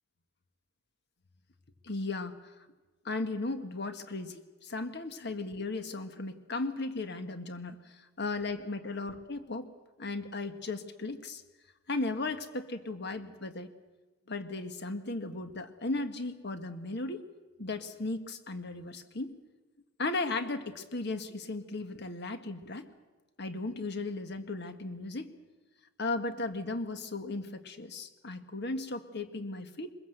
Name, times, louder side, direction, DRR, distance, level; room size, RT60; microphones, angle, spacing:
voice 1, 1.8-2.5 3.1-9.7 10.0-11.4 11.9-13.7 14.3-17.3 17.6-19.3 20.0-22.9 23.4-25.3 26.0-29.9, left 2 dB, 60° left, 8 dB, 1.6 m, -36 dB
22.5 x 21.5 x 8.0 m, 1.2 s
head